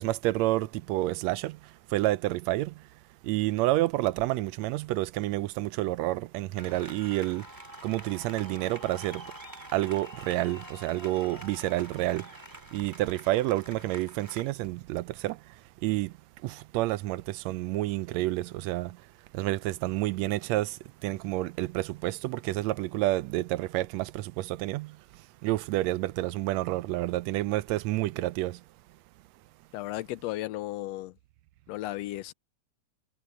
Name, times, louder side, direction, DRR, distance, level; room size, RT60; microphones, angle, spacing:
voice 1, 0.0-2.8 3.2-7.5 7.8-9.3 9.7-12.4 12.7-15.4 15.8-16.1 16.4-19.0 19.3-25.0 25.4-28.6, right 17 dB, 80° right, 1.7 m, -29 dB
sound 1, 6.5-14.5, right 1 dB, 5° right, 4.0 m, -46 dB
voice 2, 29.7-31.1 31.7-32.3, left 16 dB, 80° left, 1.5 m, -34 dB
omnidirectional pair, 3.4 m